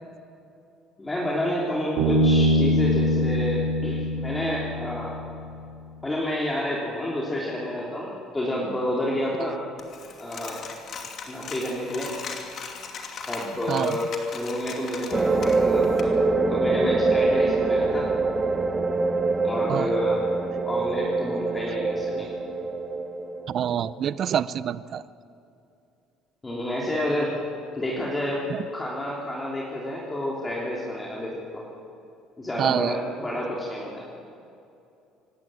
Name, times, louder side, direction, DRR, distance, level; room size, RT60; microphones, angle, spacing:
voice 1, 1.0-5.1 6.0-9.6 10.2-10.7 11.3-12.1 13.3-16.1 16.5-18.1 19.4-20.2 20.6-22.3 26.4-27.3 27.8-28.4 28.7-31.6 32.4-34.1, left 1 dB, 15° left, -4 dB, 3.4 m, -29 dB
Bass guitar, 2.0-5.5, equal, 80° right, 5.3 m, -23 dB
Coin (dropping), 9.8-16.0, left 5 dB, 50° left, 2.7 m, -39 dB
sound 1, 15.1-23.6, right 3 dB, 25° right, 1.5 m, -24 dB
voice 2, 23.5-25.0 28.5-28.6 32.6-32.9, right 9 dB, 50° right, 17 dB, 0.6 m, -26 dB
26.0 x 12.0 x 9.1 m, 2.7 s
supercardioid pair, 100°, 0 cm